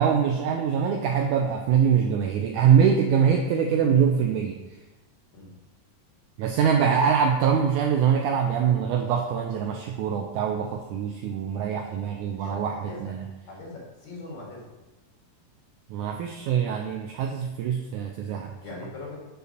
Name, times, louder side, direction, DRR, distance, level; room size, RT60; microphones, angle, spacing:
voice 1, 0.0-4.6 6.4-13.3 15.9-18.5, right 7 dB, 80° right, 3 dB, 1.8 m, -23 dB
voice 2, 12.2-13.1 13.5-14.7 18.6-19.2, left 3 dB, 60° left, -4 dB, 3.1 m, -41 dB
6.6 x 4.8 x 6.5 m, 1.1 s
omnidirectional pair, 4.0 m